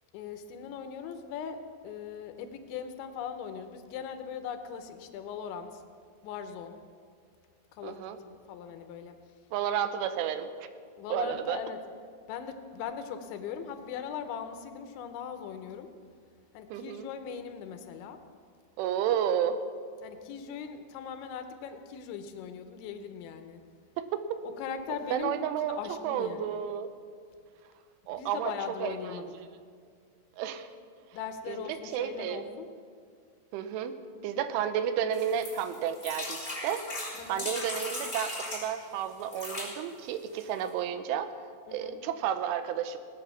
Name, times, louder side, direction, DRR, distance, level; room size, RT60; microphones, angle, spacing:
voice 1, 0.1-5.8 6.2-6.8 7.7-9.2 11.0-11.8 12.3-15.9 16.5-18.2 20.0-23.6 24.6-25.4 25.7-26.5 28.1-29.3 31.1-32.7 37.2-37.5 41.7-42.0, left 7 dB, 80° left, 8 dB, 3.1 m, -40 dB
voice 2, 7.8-8.2 9.5-10.7 11.1-11.6 16.7-17.1 18.8-19.6 24.0-24.1 25.1-26.9 28.1-28.5 28.8-29.3 30.4-30.7 31.5-31.6 31.9-32.4 33.5-33.9 34.2-41.3 41.7-43.0, right 9 dB, 85° right, 10 dB, 3.2 m, -32 dB
sound 1, 35.1-38.7 39.2-39.7 40.4-40.5 40.7-40.8, left 1 dB, 10° left, 3.9 m, -37 dB
17.5 x 8.7 x 6.9 m, 2.1 s
omnidirectional pair, 5.4 m